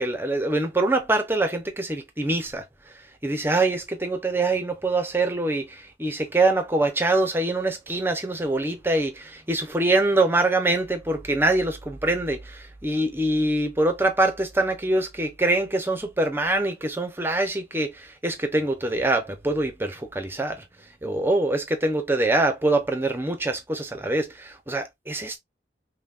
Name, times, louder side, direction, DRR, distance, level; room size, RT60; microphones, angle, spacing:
voice 1, 0.0-2.6 3.2-20.6 21.0-25.4, right 2 dB, 10° right, 0.7 m, -24 dB
5.5 x 2.2 x 2.4 m
head